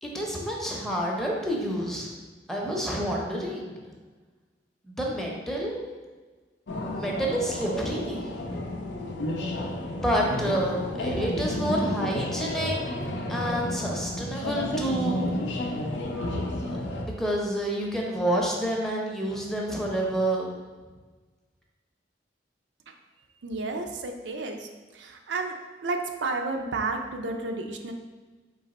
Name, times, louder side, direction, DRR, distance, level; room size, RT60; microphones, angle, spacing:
voice 1, 0.0-2.1 2.5-3.7 4.8-5.8 6.9-8.2 9.8-12.8 13.3-15.3 16.7-20.5, right 1 dB, ahead, -2 dB, 0.6 m, -29 dB
sound 1, 6.7-17.1, left 1 dB, 85° left, 0.6 m, -31 dB
voice 2, 23.4-24.7 24.9-25.5 25.8-27.9, right 3 dB, 85° right, 4 dB, 0.5 m, -31 dB
3.9 x 2.9 x 4.1 m, 1.3 s
head